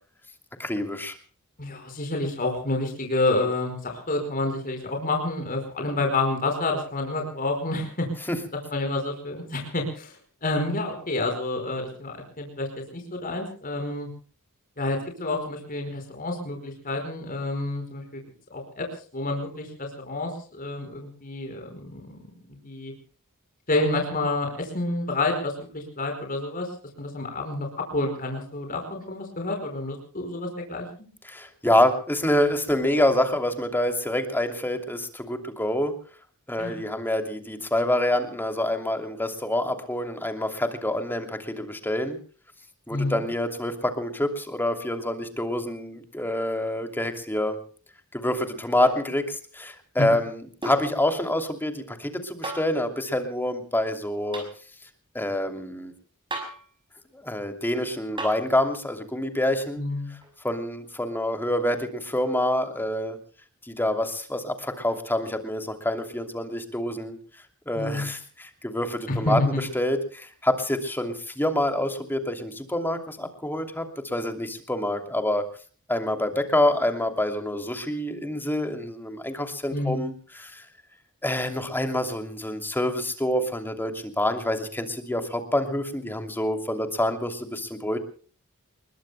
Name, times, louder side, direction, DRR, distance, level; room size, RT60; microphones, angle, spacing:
voice 1, 0.6-1.2 8.3-8.4 31.2-35.9 36.5-42.2 42.9-47.6 48.1-54.4 55.1-55.9 57.1-59.8 60.1-60.2 60.4-63.2 63.6-67.2 67.7-75.4 75.9-80.7 81.2-88.0, left 1 dB, 10° left, 6 dB, 2.8 m, -27 dB
voice 2, 1.6-8.1 8.7-10.1 10.4-12.7 12.9-14.1 14.8-18.2 18.5-18.9 19.1-22.2 22.6-22.9 23.7-26.7 27.0-30.9 36.6-36.7 42.9-43.2 59.8-60.1 67.7-68.1 69.1-69.5 79.7-80.0, left 2 dB, 40° left, 3 dB, 5.0 m, -29 dB
sound 1, 48.8-49.1 50.6-50.9 52.4-52.8 54.3-54.5 56.3-56.7 58.2-58.5 60.2-60.3, right 2 dB, 25° right, 5.7 m, -34 dB
29.5 x 21.5 x 2.2 m, 0.42 s
head